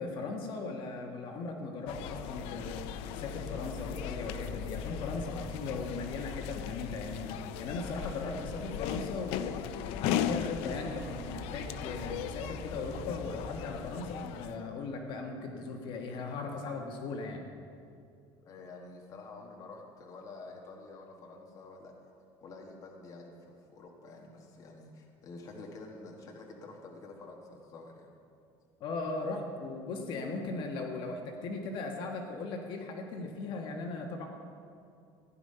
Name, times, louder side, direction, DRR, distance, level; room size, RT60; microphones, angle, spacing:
voice 1, 0.0-17.4 28.8-34.3, left 3 dB, 50° left, 2 dB, 1.4 m, -38 dB
sound 1, 1.9-14.6, left 9 dB, 75° left, 0.6 m, -37 dB
voice 2, 18.4-21.9 22.4-28.1, left 3 dB, 35° left, 0 dB, 1.4 m, -48 dB
15.5 x 10.5 x 5.6 m, 2.5 s
cardioid pair, 170°, 10 cm